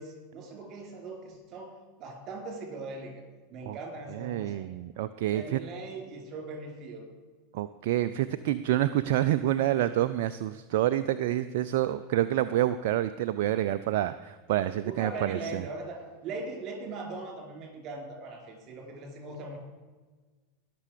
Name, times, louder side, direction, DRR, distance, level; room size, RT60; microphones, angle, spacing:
voice 1, 0.0-1.7 2.0-3.2 3.5-4.7 5.3-7.0 14.8-19.6, right 3 dB, 40° right, 2 dB, 4.4 m, -40 dB
voice 2, 4.1-5.6 7.5-15.6, right 13 dB, 60° right, 13 dB, 0.4 m, -28 dB
19.5 x 6.9 x 5.0 m, 1.3 s
hypercardioid pair, 90°, 0 cm